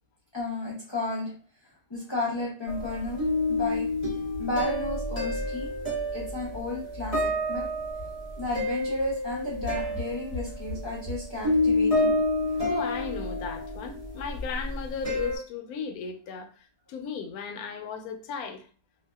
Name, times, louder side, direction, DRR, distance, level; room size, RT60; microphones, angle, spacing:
voice 1, 0.3-1.3 1.9-3.2 3.5-5.7 6.1-7.6 8.4-12.2, left 2 dB, 35° left, 0.4 m, -33 dB
sound 1, 2.7-15.4, left 1 dB, 30° right, 1.0 m, -29 dB
voice 2, 12.7-18.7, left 6 dB, 80° left, 1.0 m, -36 dB
2.7 x 2.2 x 2.2 m
omnidirectional pair, 1.6 m